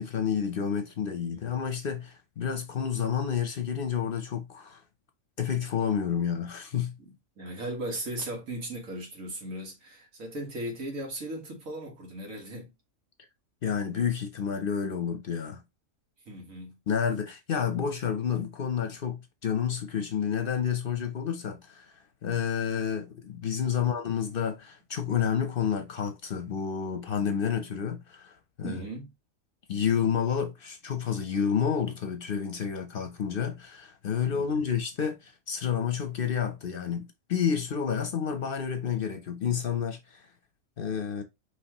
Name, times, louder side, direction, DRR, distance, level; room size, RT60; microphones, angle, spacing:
voice 1, 0.0-4.8 5.4-6.9 13.6-15.6 16.9-21.9 22.2-28.3 28.6-28.9 29.7-40.2 40.8-41.2, left 7 dB, 55° left, 0.7 m, -30 dB
voice 2, 1.3-1.6 7.0-12.7 16.3-16.7 23.6-23.9 28.6-29.1 34.3-34.6, right 1 dB, 90° right, 1.9 m, -38 dB
5.5 x 3.1 x 2.9 m
omnidirectional pair, 1.4 m